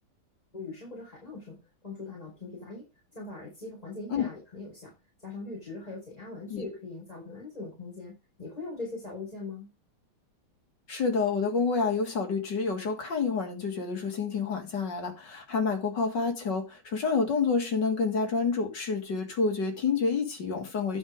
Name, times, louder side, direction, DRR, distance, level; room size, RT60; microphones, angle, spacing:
voice 1, 0.5-1.6 1.8-2.8 3.1-4.9 5.2-8.1 8.4-9.7, left 3 dB, 15° left, 4.5 m, -41 dB
voice 2, 10.9-21.0, left 4 dB, 55° left, 2.4 m, -28 dB
11.0 x 5.0 x 5.0 m
omnidirectional pair, 2.3 m